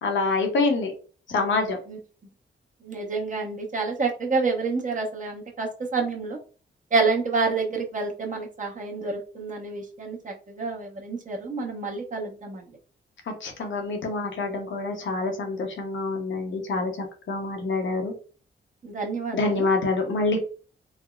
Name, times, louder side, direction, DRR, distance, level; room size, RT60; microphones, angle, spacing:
voice 1, 0.0-0.9 1.3-1.8 13.4-18.1 19.3-20.4, left 3 dB, 70° left, 3 dB, 0.8 m, -26 dB
voice 2, 2.8-6.4 6.9-12.7 18.8-19.7, right 4 dB, 40° right, -1 dB, 0.9 m, -28 dB
3.4 x 2.0 x 2.3 m, 0.37 s
cardioid pair, 100°, 20 cm